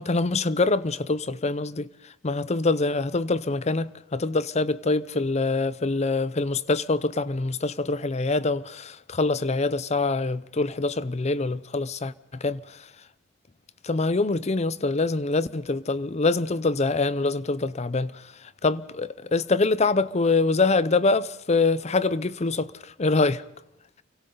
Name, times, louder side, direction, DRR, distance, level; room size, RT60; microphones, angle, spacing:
voice 1, 0.0-1.9 2.2-12.8 13.8-23.4, left 3 dB, 35° left, 0.7 m, -25 dB
29.5 x 24.0 x 3.9 m
head